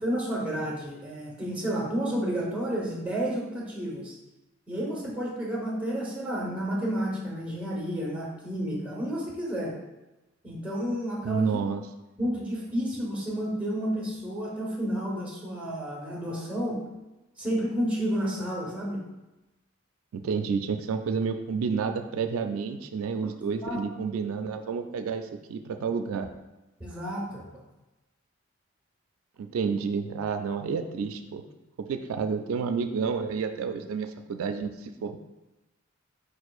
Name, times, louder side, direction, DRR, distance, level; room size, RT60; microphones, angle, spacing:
voice 1, 0.0-4.1 4.7-9.7 10.4-11.5 12.2-16.8 17.4-19.0 23.6-23.8 26.8-27.4, equal, 5° right, -4 dB, 1.0 m, -31 dB
voice 2, 11.2-11.8 20.1-26.3 29.4-31.4 31.9-35.2, right 5 dB, 90° right, 7 dB, 0.3 m, -30 dB
4.8 x 4.4 x 2.4 m, 1.0 s
head